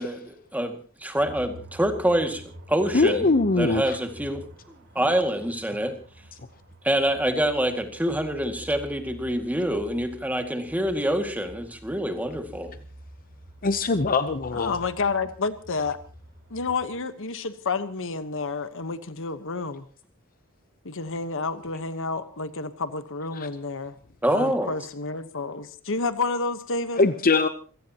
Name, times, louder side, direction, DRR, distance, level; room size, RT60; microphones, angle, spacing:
voice 1, 0.0-2.4 2.7-3.3 3.5-4.4 5.0-6.0 6.8-12.7 24.2-24.7, right 1 dB, 5° right, 2.1 m, -26 dB
sound 1, 1.2-16.9, equal, 55° right, 3.8 m, -47 dB
voice 2, 2.9-4.0 13.6-14.8 23.3-23.5 27.0-27.5, left 3 dB, 40° left, 0.8 m, -22 dB
voice 3, 14.5-16.0 16.5-19.8 20.8-23.9 24.3-27.0, left 4 dB, 60° left, 1.2 m, -30 dB
26.5 x 17.5 x 2.9 m
head